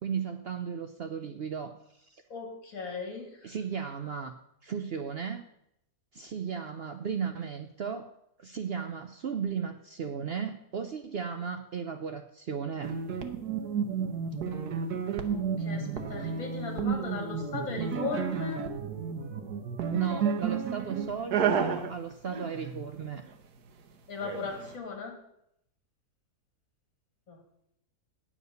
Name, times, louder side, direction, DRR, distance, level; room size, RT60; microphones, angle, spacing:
voice 1, 0.0-2.2 3.4-5.5 6.1-8.1 8.4-12.9 19.9-23.2, right 6 dB, 60° right, 7 dB, 0.7 m, -35 dB
voice 2, 2.3-3.5 15.3-18.6 24.1-25.1 27.3-27.4, left 4 dB, 60° left, 2 dB, 2.6 m, -37 dB
sound 1, 12.8-23.3 24.2-24.7, right 6 dB, 85° right, 1.5 m, -32 dB
9.6 x 7.4 x 6.7 m, 0.77 s
omnidirectional pair, 1.6 m